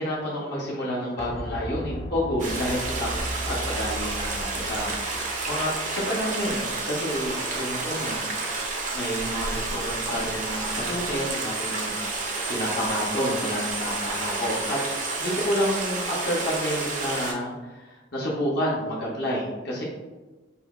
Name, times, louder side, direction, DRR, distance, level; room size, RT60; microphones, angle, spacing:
voice 1, 0.0-3.1 3.4-8.3 8.7-14.8 15.2-19.8, equal, 50° left, -5 dB, 0.7 m, -29 dB
sound 1, 1.2-6.8 7.1-7.2, equal, 15° left, 0.4 m, -37 dB
Stream, 2.4-17.3, right 3 dB, 40° right, 0.5 m, -30 dB
5.4 x 2.1 x 2.3 m, 1.2 s
head